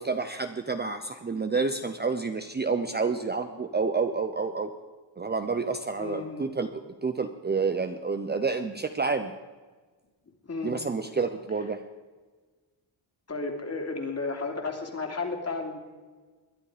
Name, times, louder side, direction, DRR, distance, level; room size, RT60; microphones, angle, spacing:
voice 1, 0.0-4.7 5.2-9.3 10.6-11.8, right 4 dB, 20° right, 7 dB, 0.7 m, -29 dB
voice 2, 6.0-6.5 10.4-10.7 13.3-15.8, left 3 dB, 30° left, 3 dB, 2.9 m, -33 dB
21.0 x 11.0 x 5.0 m, 1.4 s
wide cardioid pair, 130°, 48 cm